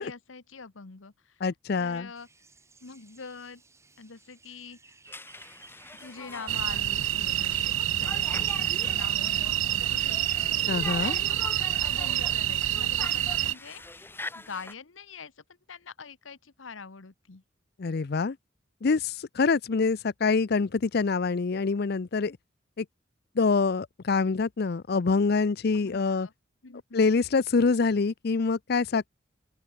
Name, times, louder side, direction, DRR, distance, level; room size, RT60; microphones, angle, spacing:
voice 1, 0.0-1.4 1.8-2.3 2.8-3.6 4.0-4.8 6.0-10.5 11.0-15.3 15.7-17.4 25.7-26.3 26.6-27.1, left 5 dB, 85° left, 1.1 m, -44 dB
voice 2, 1.4-2.1 10.7-11.2 17.8-18.4 18.8-22.4 22.8-22.9 23.4-26.3 26.9-29.1, left 4 dB, 55° left, 0.5 m, -25 dB
sound 1, 2.1-7.4, right 3 dB, 15° right, 5.3 m, -56 dB
Conversation, 5.1-14.7, left 2 dB, 10° left, 3.4 m, -43 dB
sound 2, 6.5-13.5, right 12 dB, 85° right, 0.6 m, -27 dB
head